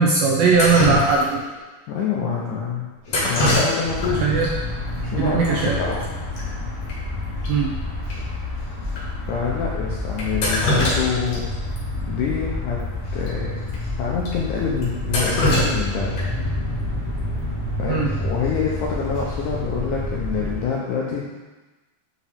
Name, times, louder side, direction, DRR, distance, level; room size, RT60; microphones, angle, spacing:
voice 1, 0.0-1.4 4.2-4.5 5.2-5.8 7.5-7.7 17.9-18.1, right 4 dB, 80° right, -2 dB, 2.0 m, -19 dB
Drip, 0.5-1.5 3.1-4.1 4.4-4.5 5.4-5.5 5.8-6.0 6.4-6.5 6.9-7.0 7.4-7.5 8.1-8.2 8.9-9.0 10.2-11.4 11.8-11.9 13.2-13.3 13.7-13.8 14.3-14.4 14.8-16.4 18.4-18.7 19.2-19.5, left 1 dB, 50° left, 2.6 m, -23 dB
voice 2, 1.9-2.9 3.2-4.2 5.0-6.1 9.3-11.5 12.1-12.8 13.1-13.5 14.0-16.1 17.8-21.2, left 6 dB, 75° left, -4 dB, 1.9 m, -26 dB
sound 1, 3.8-20.6, left 1 dB, 30° left, 2.0 m, -28 dB
8.7 x 5.0 x 3.5 m, 1.2 s
omnidirectional pair, 4.5 m